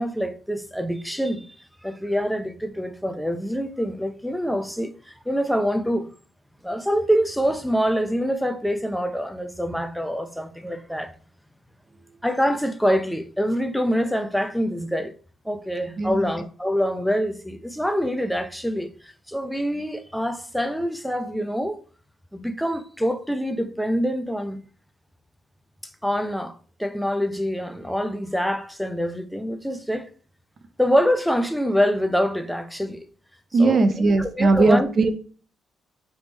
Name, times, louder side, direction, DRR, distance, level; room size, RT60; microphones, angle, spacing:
voice 1, 0.0-1.5 1.8-6.1 6.6-11.1 12.2-15.1 15.4-21.8 22.3-24.6 26.0-30.1 30.8-33.1 33.6-34.9, equal, ahead, 0.5 m, -25 dB
voice 2, 16.0-16.3 33.5-35.1, right 3 dB, 45° right, 0.6 m, -19 dB
3.5 x 3.1 x 4.0 m
cardioid pair, 90°, 0 cm